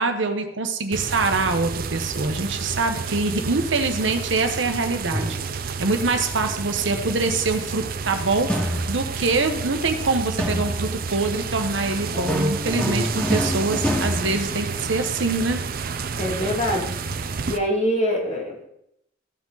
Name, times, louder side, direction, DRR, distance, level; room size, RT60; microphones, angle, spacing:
voice 1, 0.0-15.6, right 3 dB, 70° right, 7 dB, 1.1 m, -24 dB
sound 1, 0.9-17.6, right 5 dB, 50° right, 0.6 m, -30 dB
sound 2, 5.1-5.8 8.5-9.3 10.4-11.1 12.1-15.1, equal, 5° left, 1.9 m, -26 dB
voice 2, 16.2-17.0 17.5-18.7, equal, 35° left, -2 dB, 2.3 m, -24 dB
14.5 x 5.0 x 4.0 m, 0.78 s
head